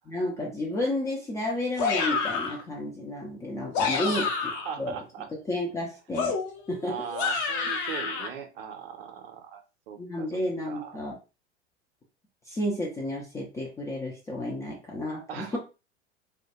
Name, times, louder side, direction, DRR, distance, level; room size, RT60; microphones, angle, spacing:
voice 1, 0.1-4.3 4.8-5.0 5.5-6.3 6.7-7.0 10.0-11.1 12.5-15.6, left 1 dB, 10° left, -3 dB, 0.3 m, -31 dB
sound 1, 1.8-2.6 3.6-4.8 6.2-8.3, left 5 dB, 45° left, 0.6 m, -29 dB
voice 2, 4.1-5.3 6.8-11.0 15.3-15.6, right 8 dB, 55° right, 5 dB, 0.6 m, -40 dB
2.2 x 2.1 x 2.7 m, 0.31 s
figure-of-eight pair, 80°, 35 cm